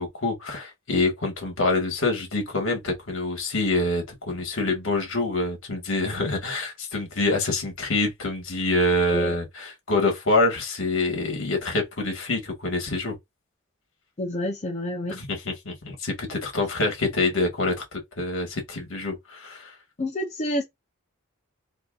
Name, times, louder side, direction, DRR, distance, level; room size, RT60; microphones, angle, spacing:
voice 1, 0.0-13.2 15.2-19.7, left 2 dB, 65° left, 1.6 m, -26 dB
voice 2, 14.2-15.2 20.0-20.6, left 1 dB, 30° left, 0.7 m, -28 dB
4.3 x 2.7 x 2.5 m
head